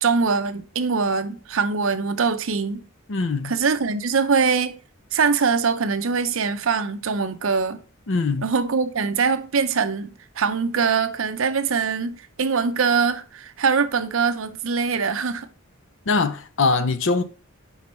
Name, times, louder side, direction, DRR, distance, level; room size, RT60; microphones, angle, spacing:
voice 1, 0.0-2.8 3.4-4.8 5.1-7.8 8.4-15.5, right 5 dB, 65° right, 0.6 m, -23 dB
voice 2, 3.1-3.5 8.1-8.5 16.1-17.2, left 4 dB, 60° left, 0.7 m, -22 dB
5.3 x 4.7 x 5.5 m
head